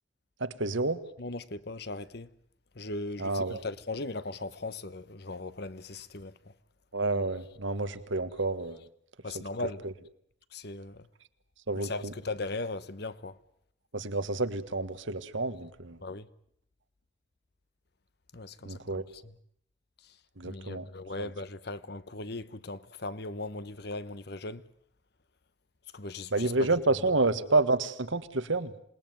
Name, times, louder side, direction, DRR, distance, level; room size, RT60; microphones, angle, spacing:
voice 1, 0.4-1.0 3.2-3.6 6.9-8.8 9.8-9.9 11.7-12.1 13.9-16.0 18.6-19.0 20.4-20.9 21.2-21.3 26.3-28.7, right 3 dB, 75° right, 1.6 m, -29 dB
voice 2, 1.2-2.3 2.7-6.4 9.2-9.9 10.5-11.1 11.7-13.4 16.0-16.3 18.3-18.8 19.1-19.3 20.4-24.6 25.9-26.5, left 2 dB, 55° left, 1.1 m, -38 dB
27.5 x 20.0 x 9.3 m
head